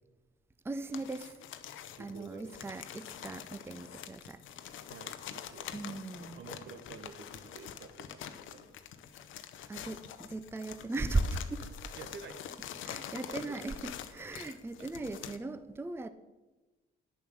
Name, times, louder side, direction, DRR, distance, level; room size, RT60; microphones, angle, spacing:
voice 1, 0.6-1.4 2.0-4.4 4.7-4.8 5.7-6.4 9.7-11.6 12.8-16.1, right 2 dB, 10° right, 12 dB, 0.5 m, -37 dB
sound 1, 0.9-15.4, left 10 dB, 80° left, 0.7 m, -46 dB
voice 2, 2.0-2.8 4.8-5.7 6.2-8.9 11.6-11.7 12.0-12.4 13.3-13.7 14.5-14.6, right 5 dB, 70° right, 9 dB, 1.1 m, -50 dB
10.5 x 7.1 x 6.2 m, 1.2 s
cardioid pair, 90°, 20 cm